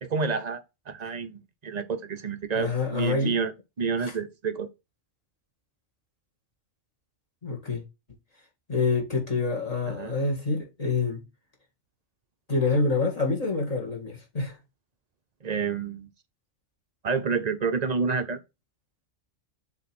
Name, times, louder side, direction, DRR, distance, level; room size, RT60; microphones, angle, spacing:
voice 1, 0.0-3.5 3.8-4.7 9.9-10.1 15.4-16.1 17.0-18.4, right 5 dB, 40° right, 0.7 m, -29 dB
voice 2, 2.5-3.4 4.0-4.1 7.4-7.8 8.7-11.2 12.5-14.6, left 3 dB, 30° left, 1.9 m, -27 dB
7.1 x 3.2 x 6.0 m
omnidirectional pair, 1.2 m